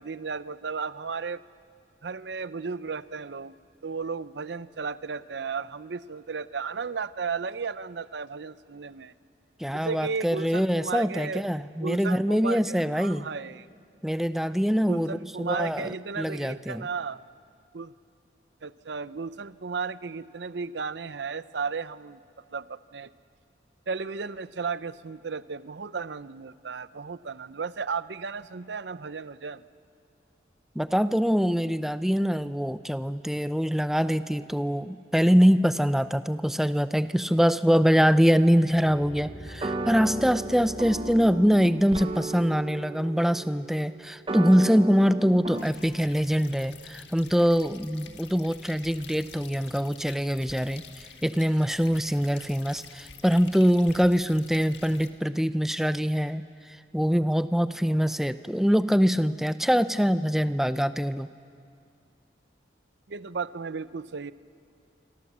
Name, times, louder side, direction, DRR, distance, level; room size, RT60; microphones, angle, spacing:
voice 1, 0.0-1.4 2.0-3.5 3.8-9.1 9.7-11.4 11.8-13.7 14.9-17.2 17.7-17.9 18.6-22.2 22.5-23.1 23.9-29.6 63.1-64.3, right 5 dB, 75° right, 15 dB, 0.6 m, -34 dB
voice 2, 9.6-13.3 14.0-16.9 30.8-56.4 56.9-61.3, equal, ahead, 12 dB, 0.5 m, -24 dB
sound 1, 38.7-41.8, equal, 50° left, 3.0 m, -44 dB
sound 2, 38.7-45.6, right 2 dB, 30° right, 0.9 m, -35 dB
sound 3, 45.6-55.1, left 6 dB, 80° left, 1.7 m, -48 dB
26.0 x 25.5 x 7.4 m, 2.3 s
head